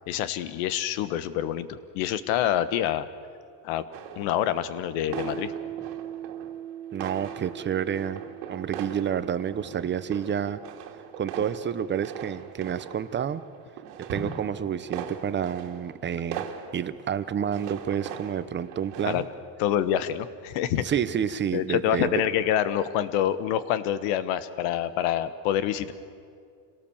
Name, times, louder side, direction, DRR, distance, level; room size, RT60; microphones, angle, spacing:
voice 1, 0.1-3.1 3.6-3.8 4.2-5.5 19.0-19.2 19.6-20.8 21.5-25.9, left 10 dB, 75° left, 14 dB, 1.3 m, -26 dB
sound 1, 3.9-4.8 5.1-6.7 6.9-19.2, right 8 dB, 90° right, 2.3 m, -40 dB
Piano, 5.1-12.4, right 9 dB, 5° right, 1.1 m, -41 dB
voice 2, 6.9-8.2 8.5-10.6 11.2-13.4 14.0-16.4 16.7-19.2 20.8-22.1, right 8 dB, 25° right, 14 dB, 0.7 m, -29 dB
27.5 x 18.0 x 7.2 m, 2.2 s
cardioid pair, 140°, 49 cm